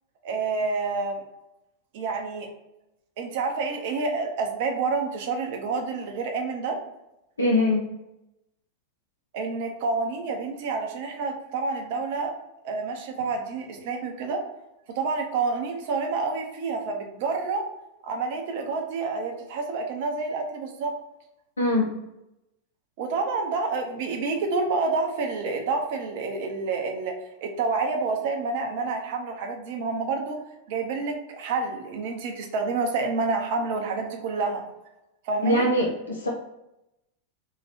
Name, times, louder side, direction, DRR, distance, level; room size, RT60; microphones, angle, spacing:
voice 1, 0.2-1.2 1.9-2.5 3.2-6.8 9.3-12.3 12.6-14.4 15.0-17.7 18.0-20.9 23.0-27.1 27.4-30.4 30.7-34.6 35.2-35.7, right 4 dB, 50° right, 3 dB, 0.7 m, -28 dB
voice 2, 7.4-7.9 21.6-21.9 35.4-36.3, left 1 dB, 75° left, -1 dB, 0.5 m, -22 dB
3.0 x 2.8 x 4.2 m, 0.90 s
figure-of-eight pair, 90°, 0 cm